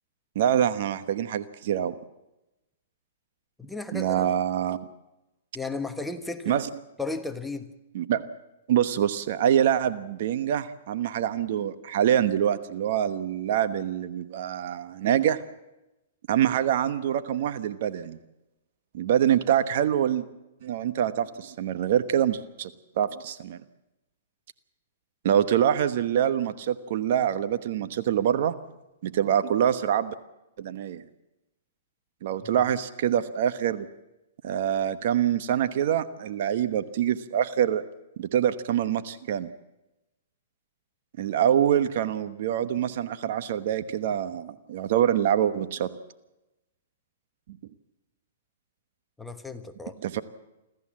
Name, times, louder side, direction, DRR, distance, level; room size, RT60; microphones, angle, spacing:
voice 1, 0.3-1.9 3.9-4.8 6.5-6.7 7.9-8.2 8.7-15.4 16.3-18.2 18.9-20.2 20.6-22.7 23.0-23.6 25.2-28.6 29.0-30.1 30.6-31.0 32.2-33.9 34.4-37.8 38.2-39.5 41.2-45.9 50.0-50.2, right 10 dB, 55° right, 11 dB, 1.1 m, -25 dB
voice 2, 3.6-4.4 5.5-6.6 7.0-7.7 32.4-32.6 49.2-50.0, left 3 dB, 5° left, 6 dB, 1.2 m, -35 dB
26.5 x 13.5 x 7.5 m, 0.99 s
hypercardioid pair, 130°, 0 cm